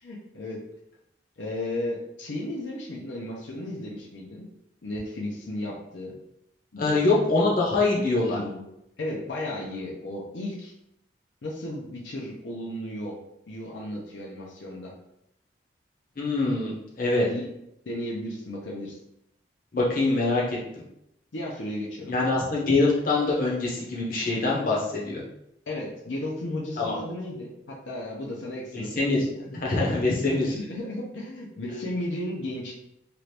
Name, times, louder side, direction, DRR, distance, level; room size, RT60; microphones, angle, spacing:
voice 1, 0.0-0.6 1.4-4.5 4.8-6.2 6.7-7.1 8.0-8.6 9.0-10.7 11.4-13.2 13.5-14.9 17.3-17.5 17.9-19.0 21.3-22.2 25.7-29.4 30.2-32.7, left 1 dB, 85° left, -3 dB, 0.6 m, -34 dB
voice 2, 6.8-8.4 16.2-17.3 19.7-20.8 22.1-25.2 26.8-26.9 28.7-30.6, left 2 dB, 50° left, -4 dB, 0.8 m, -24 dB
2.9 x 2.5 x 3.3 m, 0.81 s
head